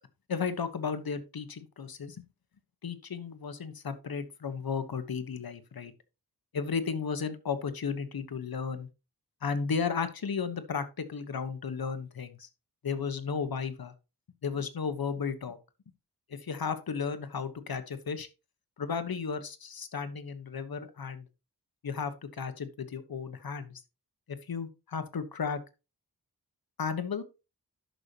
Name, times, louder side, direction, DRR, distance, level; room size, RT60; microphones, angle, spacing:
voice 1, 0.3-2.2 2.8-5.9 6.5-8.9 9.4-12.5 12.8-13.9 14.4-15.6 16.3-18.3 18.8-21.3 21.8-23.8 24.3-25.6 26.8-27.2, left 6 dB, 75° left, 1.3 m, -34 dB
10.5 x 6.7 x 2.9 m
wide cardioid pair, 110°, 37 cm